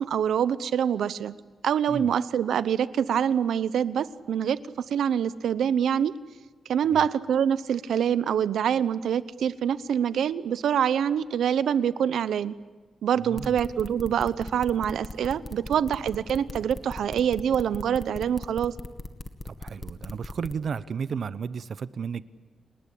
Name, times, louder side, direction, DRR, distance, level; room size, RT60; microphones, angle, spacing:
voice 1, 0.0-1.3 1.6-6.1 6.7-12.5 13.0-18.7, right 8 dB, 85° right, 16 dB, 0.9 m, -25 dB
voice 2, 13.2-13.5 19.4-22.2, right 6 dB, 55° right, 15 dB, 0.9 m, -33 dB
sound 1, 13.3-20.5, left 2 dB, 25° left, 1.8 m, -38 dB
28.5 x 19.5 x 8.6 m, 1.3 s
wide cardioid pair, 120°, 0 cm